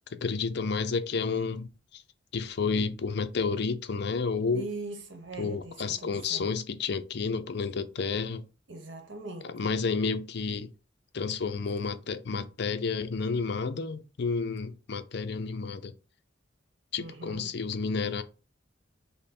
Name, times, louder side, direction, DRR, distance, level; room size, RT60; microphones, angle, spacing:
voice 1, 0.1-2.0 2.3-4.7 5.4-8.4 9.4-10.7 11.1-15.9 16.9-18.2, left 4 dB, 60° left, 0.5 m, -31 dB
voice 2, 4.5-6.5 8.7-9.7 17.0-17.5, right 3 dB, 70° right, 1.0 m, -41 dB
5.5 x 2.1 x 4.2 m
head